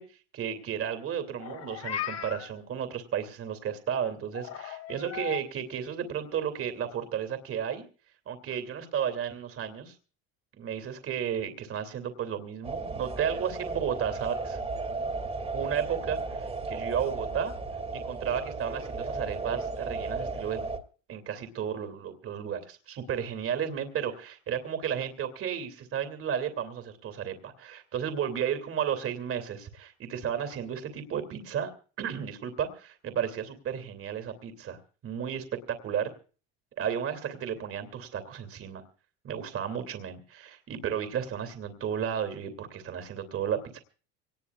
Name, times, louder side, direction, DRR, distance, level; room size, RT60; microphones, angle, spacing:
voice 1, 0.0-7.8 8.3-10.0 10.6-14.6 15.5-17.5 17.9-20.6 21.1-31.7 32.0-36.1 36.8-38.8 39.2-43.8, right 8 dB, 40° right, 8 dB, 2.7 m, -33 dB
Meow, 1.3-2.5 4.3-5.4, left 10 dB, 50° left, 2.6 m, -37 dB
sound 1, 12.6-20.8, right 3 dB, 20° right, 2.3 m, -35 dB
24.5 x 19.0 x 2.4 m, 0.38 s
supercardioid pair, 100°, 33 cm